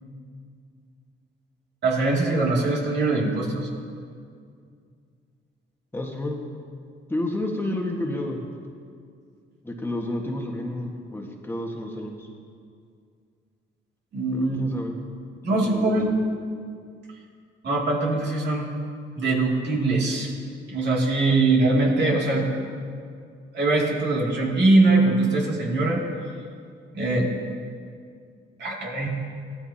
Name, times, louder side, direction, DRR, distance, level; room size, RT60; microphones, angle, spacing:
voice 1, 1.8-3.7 14.1-14.8 15.4-16.1 17.6-18.7 19.2-20.3 20.7-22.5 23.5-26.0 26.9-27.3 28.6-29.1, right 2 dB, 60° right, -2 dB, 2.5 m, -22 dB
voice 2, 5.9-6.4 7.1-8.4 9.6-12.3 14.3-15.0 15.5-16.0, left 1 dB, 10° left, 0 dB, 1.5 m, -30 dB
16.0 x 13.0 x 2.8 m, 2.2 s
cardioid pair, 90°, 20 cm